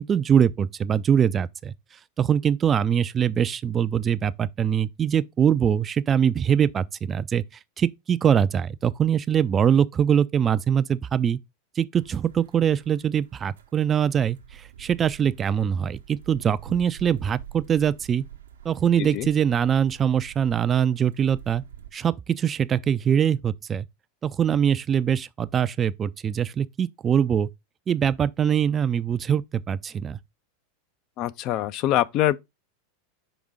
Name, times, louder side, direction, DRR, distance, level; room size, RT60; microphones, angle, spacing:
voice 1, 0.0-1.7 2.2-7.4 7.8-11.4 11.8-18.2 18.6-21.6 21.9-23.9 24.2-27.5 27.9-30.2, right 8 dB, 30° right, 0.3 m, -23 dB
sound 1, 12.0-21.9, right 10 dB, 80° right, 0.8 m, -46 dB
voice 2, 31.2-32.4, left 13 dB, 45° left, 0.4 m, -24 dB
5.3 x 5.0 x 3.6 m
hypercardioid pair, 100°, 0 cm